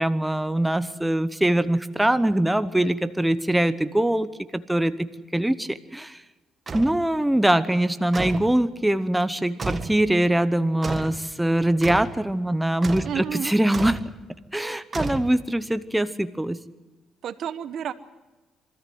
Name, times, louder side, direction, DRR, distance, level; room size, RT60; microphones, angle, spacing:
voice 1, 0.0-6.2 6.7-14.0 14.5-16.6, right 1 dB, 5° right, 12 dB, 0.8 m, -23 dB
sound 1, 6.7-7.0 8.1-8.5 9.6-10.0 10.8-11.2 11.8-12.2 12.8-13.2 13.7-14.1 14.9-15.6, right 4 dB, 35° right, 1.6 m, -31 dB
voice 2, 13.0-13.5 17.2-17.9, right 8 dB, 70° right, 13 dB, 1.0 m, -30 dB
24.0 x 14.0 x 9.3 m, 1.1 s
cardioid pair, 90°, 0 cm